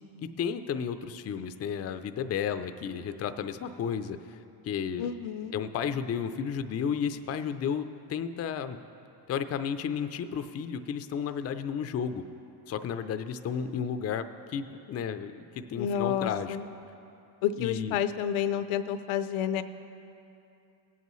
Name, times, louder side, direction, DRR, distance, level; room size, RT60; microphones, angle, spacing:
voice 1, 0.2-4.4 4.6-5.1 5.5-8.8 9.3-12.2 12.7-16.6 17.6-18.0, left 7 dB, 35° left, 10 dB, 0.4 m, -33 dB
voice 2, 5.0-5.5 15.8-16.7 17.4-19.6, left 9 dB, 75° left, 11 dB, 0.6 m, -30 dB
17.0 x 8.3 x 3.1 m, 2.7 s
cardioid pair, 90°, 49 cm